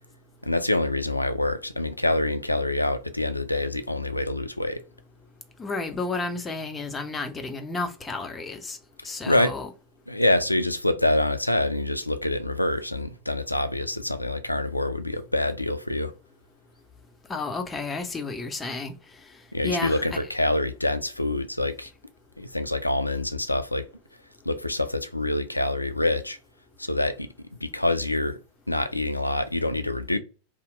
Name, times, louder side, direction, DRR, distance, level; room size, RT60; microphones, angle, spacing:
voice 1, 0.4-4.8 9.3-9.5 10.1-16.1 19.5-21.9 22.4-23.9 24.5-26.4 26.8-27.3 27.6-28.4 28.7-30.2, left 1 dB, 85° left, 0.3 m, -26 dB
voice 2, 5.6-8.8 9.0-9.7 17.3-18.9 19.6-20.3, left 3 dB, 15° left, 0.5 m, -31 dB
2.7 x 2.1 x 3.7 m
figure-of-eight pair, 90°, 0 cm